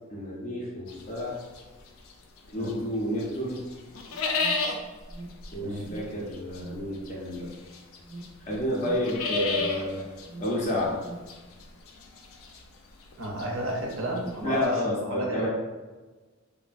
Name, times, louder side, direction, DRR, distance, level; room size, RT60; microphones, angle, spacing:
voice 1, 0.1-1.4 2.5-3.6 5.5-7.5 8.5-10.0 10.4-10.9 14.4-15.5, left 1 dB, 35° left, -5 dB, 0.5 m, -30 dB
sound 1, 0.9-2.9 3.2-14.7, left 4 dB, 85° left, 0.4 m, -34 dB
Alarm, 3.9-11.4, right 1 dB, 20° right, 0.4 m, -46 dB
voice 2, 13.2-15.5, right 1 dB, 70° right, -1 dB, 0.6 m, -32 dB
3.0 x 2.1 x 2.5 m, 1.3 s
head